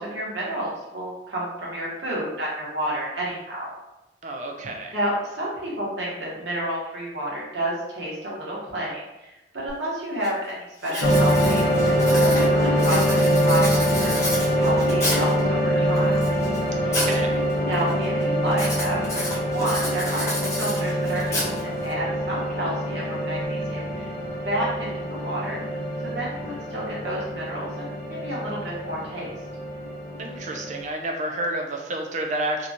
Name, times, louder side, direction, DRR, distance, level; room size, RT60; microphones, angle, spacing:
voice 1, 0.0-3.7 4.9-16.1 17.6-21.5 21.8-24.1 24.4-25.6 26.1-29.3, right 1 dB, 75° right, -6 dB, 1.0 m, -30 dB
voice 2, 4.2-4.9 16.8-17.4 30.2-32.7, right 1 dB, 45° right, 3 dB, 0.4 m, -30 dB
Writing, 9.7-9.8 10.2-10.5 10.8-15.4 16.0-17.2 17.5-17.9 18.5-21.9, left 1 dB, 15° left, 0.7 m, -30 dB
sound 1, 11.0-30.8, equal, 60° left, 0.5 m, -24 dB
2.9 x 2.3 x 2.6 m, 1.0 s
head